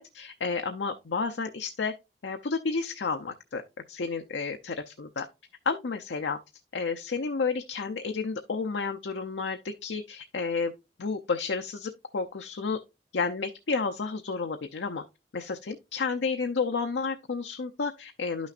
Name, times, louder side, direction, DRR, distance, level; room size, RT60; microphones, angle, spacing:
voice 1, 0.1-1.9 2.2-3.6 3.9-5.3 5.7-6.4 6.7-10.7 11.0-12.8 13.1-15.0 15.3-18.5, left 4 dB, 90° left, 0.6 m, -31 dB
11.0 x 6.2 x 2.5 m
head